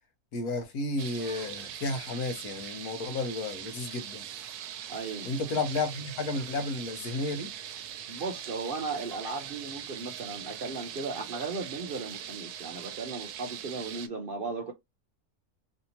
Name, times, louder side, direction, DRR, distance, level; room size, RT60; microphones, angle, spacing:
voice 1, 0.3-4.2 5.2-7.5, left 3 dB, 75° left, 1.4 m, -32 dB
sound 1, 1.0-14.1, right 10 dB, 85° right, 1.1 m, -41 dB
voice 2, 4.9-5.3 8.1-14.7, right 4 dB, 55° right, 0.6 m, -36 dB
3.3 x 2.8 x 2.7 m
omnidirectional pair, 1.6 m